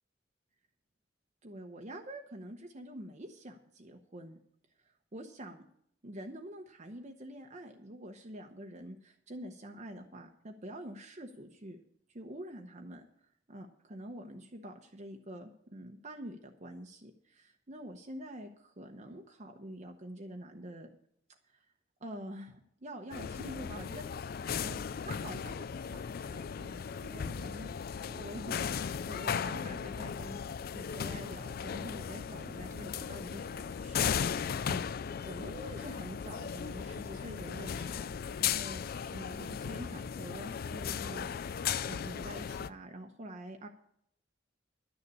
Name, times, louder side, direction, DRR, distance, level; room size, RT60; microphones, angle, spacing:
voice 1, 1.4-4.4 5.1-5.6 6.0-11.8 12.1-13.0 13.5-20.9 21.5-21.6 22.0-27.7 28.1-30.4 30.7-34.9 35.2-43.7, right 1 dB, 40° right, 3 dB, 0.9 m, -46 dB
sound 1, 23.1-42.7, left 7 dB, 50° left, 0.4 m, -37 dB
11.5 x 6.8 x 8.5 m, 0.69 s
head